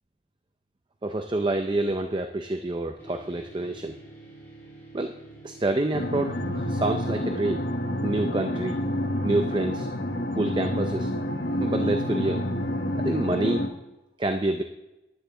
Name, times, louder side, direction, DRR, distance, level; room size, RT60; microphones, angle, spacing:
voice 1, 1.0-4.0 4.9-5.1 5.4-7.6 8.0-8.8 9.2-9.9 10.4-11.1 11.6-12.4 13.0-13.7 14.2-14.6, right 2 dB, 25° right, 6 dB, 0.5 m, -27 dB
sound 1, 3.0-9.7, right 2 dB, 15° left, 4.1 m, -48 dB
sound 2, 5.9-13.7, left 1 dB, 65° left, 1.2 m, -28 dB
15.0 x 10.5 x 3.8 m, 0.96 s
head